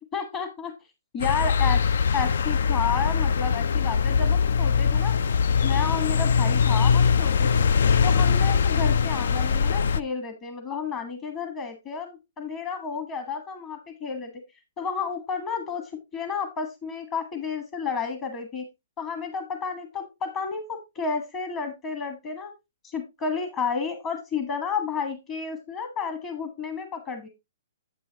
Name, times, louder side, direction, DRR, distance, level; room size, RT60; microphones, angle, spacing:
voice 1, 0.1-0.7 1.1-1.8 2.1-5.2 5.6-7.6 8.0-14.3 14.8-18.7 19.0-22.5 22.8-27.3, left 5 dB, 30° left, 6 dB, 1.4 m, -31 dB
sound 1, 1.2-10.0, left 6 dB, 75° left, 0.4 m, -22 dB
9.0 x 7.9 x 2.9 m, 0.23 s
hypercardioid pair, 145°, 0 cm